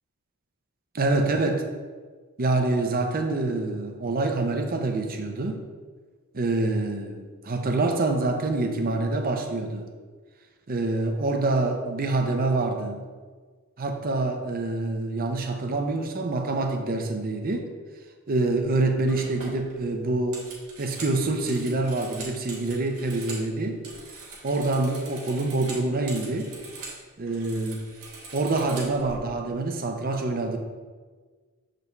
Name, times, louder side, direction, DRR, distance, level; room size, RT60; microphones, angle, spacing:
voice 1, 0.9-1.6 2.4-5.6 6.3-9.9 10.7-13.0 13.8-17.7 18.3-20.4 20.8-23.8 24.4-26.5 27.2-27.8 28.3-30.6, right 2 dB, 40° right, 5 dB, 0.6 m, -26 dB
sound 1, 18.5-18.7 19.1-23.5 23.8-27.0 27.3-29.2, right 3 dB, 70° right, 1.7 m, -42 dB
6.9 x 5.1 x 3.2 m, 1.5 s
head